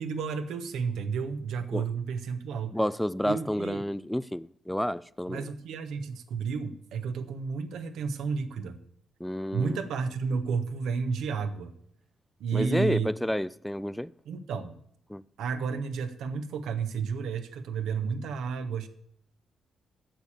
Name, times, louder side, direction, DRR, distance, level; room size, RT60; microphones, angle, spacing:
voice 1, 0.0-2.7 3.2-3.8 5.3-8.8 9.5-11.7 12.4-13.1 14.2-14.8 15.4-18.9, right 5 dB, 75° right, 1.1 m, -31 dB
voice 2, 2.7-5.5 9.2-9.8 12.5-14.1 15.1-15.2, equal, 5° left, 0.4 m, -30 dB
9.0 x 7.2 x 8.5 m
hypercardioid pair, 45°, 0 cm